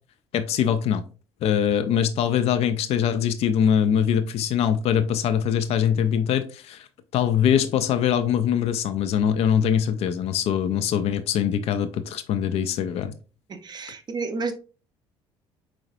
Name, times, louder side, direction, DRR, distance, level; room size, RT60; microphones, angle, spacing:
voice 1, 0.3-1.0 1.4-6.9 7.1-13.1, left 8 dB, 45° left, 0.5 m, -23 dB
voice 2, 13.5-14.5, right 4 dB, 30° right, 0.8 m, -31 dB
4.7 x 4.3 x 2.6 m
figure-of-eight pair, 55°, 15 cm